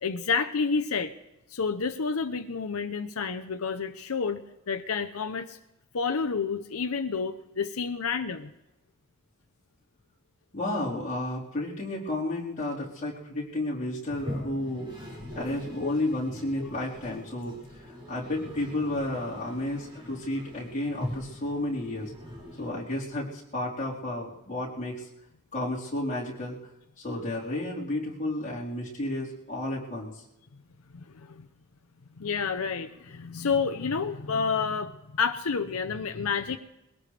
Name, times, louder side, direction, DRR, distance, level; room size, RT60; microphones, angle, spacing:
voice 1, 0.0-1.1 1.5-5.6 5.9-8.5 15.8-16.0 16.6-16.7 30.9-31.5 32.2-36.6, left 5 dB, 85° left, 8 dB, 0.7 m, -29 dB
voice 2, 10.5-17.6 17.8-22.1 22.6-25.1 25.5-26.6 27.0-30.2, left 1 dB, 35° left, -6 dB, 4.1 m, -32 dB
Toilet flush, 14.0-23.2, left 1 dB, 25° right, 5.2 m, -42 dB
22.0 x 17.5 x 3.3 m, 0.94 s
head